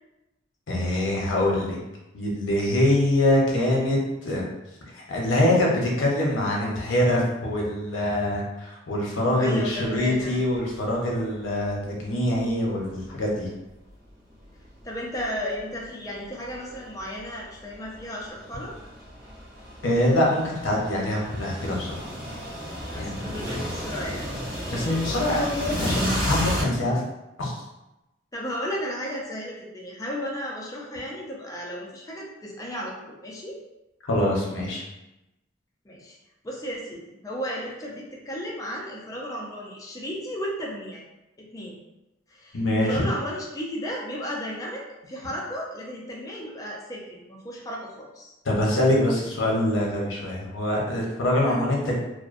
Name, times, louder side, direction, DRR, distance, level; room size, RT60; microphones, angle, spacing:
voice 1, 0.7-1.8 2.1-4.4 4.9-13.5 19.8-22.1 23.0-23.3 24.7-27.0 27.4-27.6 34.0-34.8 42.5-43.0 48.5-52.0, left 1 dB, 90° left, -3 dB, 0.7 m, -24 dB
voice 2, 9.4-10.4 14.8-18.8 22.9-24.3 28.3-33.6 35.8-36.2 36.4-41.0 41.4-41.8 42.3-48.3 51.4-51.6, equal, 20° left, -2 dB, 0.4 m, -34 dB
sound 1, 9.8-10.1 10.5-10.6 11.6-13.3 13.9-26.6, equal, 45° right, 1.1 m, -33 dB
2.5 x 2.1 x 2.4 m, 0.96 s
head